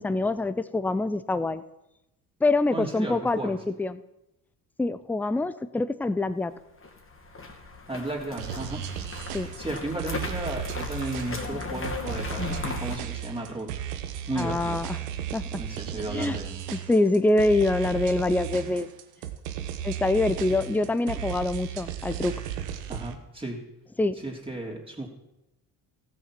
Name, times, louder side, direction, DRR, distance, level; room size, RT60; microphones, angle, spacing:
voice 1, 0.0-1.6 2.4-4.0 4.8-6.5 9.3-9.5 14.4-15.0 15.3-15.6 16.1-16.4 16.7-18.9 19.8-22.3 24.0-24.1, left 2 dB, 5° left, 13 dB, 0.5 m, -25 dB
voice 2, 2.7-3.6 7.9-8.8 9.2-13.7 14.3-14.8 15.6-16.6 22.9-23.6 24.1-25.1, right 2 dB, 10° right, -1 dB, 3.1 m, -34 dB
sound 1, 6.8-13.0, left 3 dB, 25° left, 2.3 m, -36 dB
sound 2, 8.4-23.1, right 10 dB, 90° right, 1.0 m, -35 dB
15.0 x 6.7 x 6.0 m, 0.89 s
hypercardioid pair, 60°, 47 cm